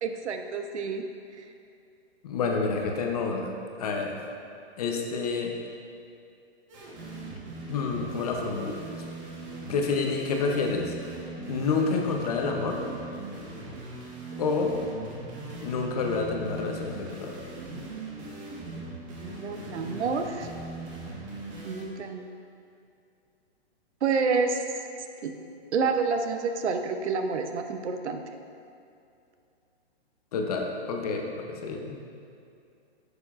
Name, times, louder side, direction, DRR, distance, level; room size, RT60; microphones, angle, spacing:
voice 1, 0.0-1.0 1.4-1.5 19.2-20.5 21.6-22.2 24.0-24.6 25.2-25.3 25.7-28.2, right 5 dB, 90° right, 6 dB, 0.8 m, -28 dB
voice 2, 2.2-3.5 3.8-4.2 4.8-5.5 7.7-8.8 9.7-10.9 11.5-12.8 14.4-14.8 15.6-17.3 30.3-32.0, left 4 dB, 35° left, 2 dB, 0.7 m, -28 dB
sound 1, 6.7-21.8, right 2 dB, 30° right, 1.1 m, -40 dB
8.8 x 6.7 x 2.4 m, 2.5 s
hypercardioid pair, 160°, 33 cm